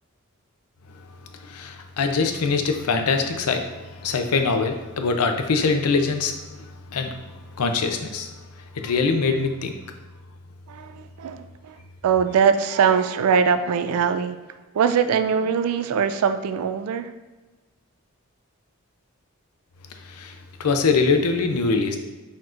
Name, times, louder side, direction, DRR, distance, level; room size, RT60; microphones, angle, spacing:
voice 1, 1.4-7.2 7.6-8.3 8.7-9.7 20.0-22.0, left 4 dB, 90° left, 6 dB, 0.5 m, -23 dB
voice 2, 10.7-14.4 14.7-17.1, right 6 dB, 80° right, 10 dB, 0.3 m, -22 dB
4.3 x 4.3 x 2.5 m, 1.2 s
head